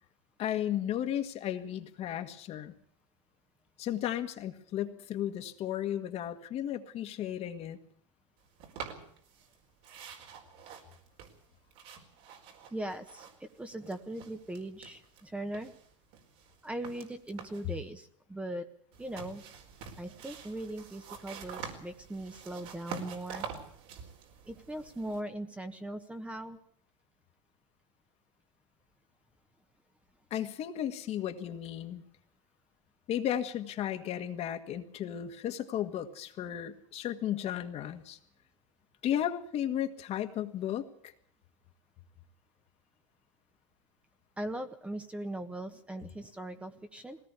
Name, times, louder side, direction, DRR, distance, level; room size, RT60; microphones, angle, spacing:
voice 1, 0.4-2.8 3.8-7.8 30.3-32.0 33.1-38.2 39.0-41.1, left 11 dB, 40° left, 6 dB, 1.8 m, -34 dB
sound 1, 8.6-9.6 9.8-13.6 13.8-15.2 15.5-17.7 18.9-25.2, right 7 dB, 60° right, 4.6 m, -46 dB
voice 2, 12.7-15.7 16.6-18.6 19.0-19.4 20.0-23.5 24.5-26.6 44.4-47.2, right 1 dB, 10° right, 7 dB, 1.5 m, -39 dB
20.0 x 17.5 x 8.3 m, 0.62 s
supercardioid pair, 115°, 16 cm